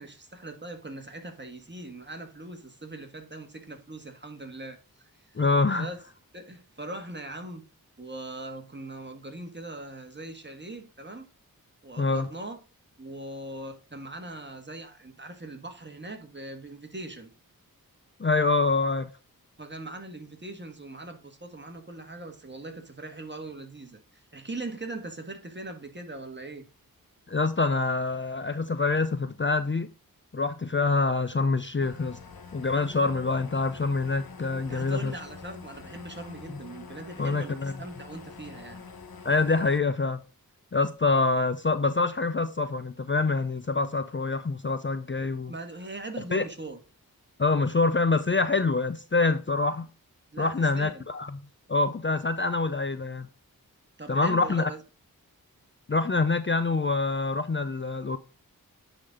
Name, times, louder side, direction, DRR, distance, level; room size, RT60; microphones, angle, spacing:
voice 1, 0.0-5.4 5.8-6.0 6.3-7.6 8.0-11.3 11.8-12.6 13.0-17.3 19.6-26.7 34.7-38.8 45.5-46.8 50.3-51.0 54.0-54.8, right 2 dB, 30° right, 1.7 m, -40 dB
voice 2, 5.3-5.9 12.0-12.3 18.2-19.1 27.3-29.9 30.3-32.2 32.5-35.1 37.2-37.7 39.2-40.2 40.7-45.5 46.3-46.4 47.4-49.9 50.4-51.3 51.7-53.3 54.1-54.7 55.9-58.2, left 3 dB, 35° left, 0.6 m, -25 dB
sound 1, 31.8-39.8, left 5 dB, 75° left, 1.1 m, -46 dB
9.7 x 4.2 x 3.6 m
wide cardioid pair, 55°, 36 cm